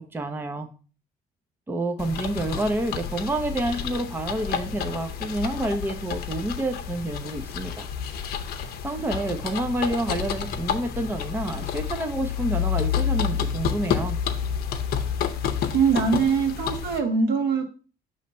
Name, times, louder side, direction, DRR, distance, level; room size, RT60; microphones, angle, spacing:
voice 1, 0.1-0.7 1.7-7.9 8.8-14.2, right 1 dB, 15° right, 6 dB, 0.6 m, -28 dB
sound 1, 2.0-17.0, left 8 dB, 65° left, 0.7 m, -29 dB
voice 2, 15.7-17.7, right 5 dB, 70° right, 3 dB, 1.5 m, -22 dB
5.6 x 3.2 x 5.3 m, 0.37 s
cardioid pair, 110°, 17 cm